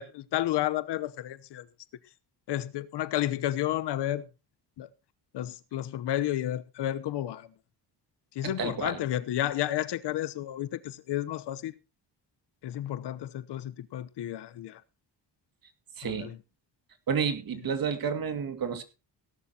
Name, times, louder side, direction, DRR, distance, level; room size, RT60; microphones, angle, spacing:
voice 1, 0.0-1.6 2.5-4.2 4.8-4.9 5.3-7.4 8.4-11.7 12.6-14.8 16.1-16.3, left 13 dB, 75° left, 1.0 m, -31 dB
voice 2, 8.4-9.0 16.0-16.3 17.1-18.8, right 6 dB, 55° right, 2.3 m, -30 dB
17.0 x 11.5 x 2.9 m
cardioid pair, 125°, 41 cm